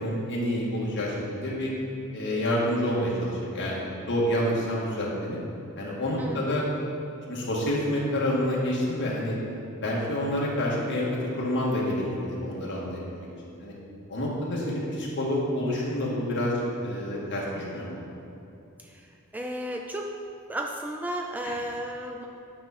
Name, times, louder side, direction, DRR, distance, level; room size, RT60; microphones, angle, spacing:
voice 1, 0.0-1.7 2.1-5.4 5.8-6.6 7.3-9.3 9.8-11.1 11.3-13.3 13.6-13.7 14.1-18.0 21.4-21.6, left 1 dB, 55° left, -5 dB, 1.8 m, -28 dB
voice 2, 19.3-20.1 20.5-22.3, right 1 dB, 5° right, 2 dB, 0.3 m, -33 dB
9.3 x 5.8 x 4.2 m, 2.7 s
head